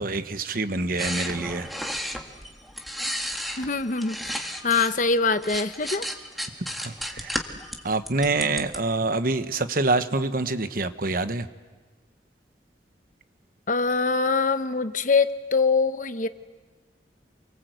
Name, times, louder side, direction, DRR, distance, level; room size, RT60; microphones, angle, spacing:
voice 1, 0.0-1.7 6.6-7.4 7.8-11.5, right 3 dB, 55° right, 10 dB, 1.2 m, -26 dB
sound 1, 1.0-4.9 5.3-8.8, equal, ahead, 1.7 m, -33 dB
voice 2, 3.6-6.0 13.7-16.3, left 4 dB, 45° left, 11 dB, 0.9 m, -24 dB
29.0 x 23.5 x 8.0 m, 1.3 s
head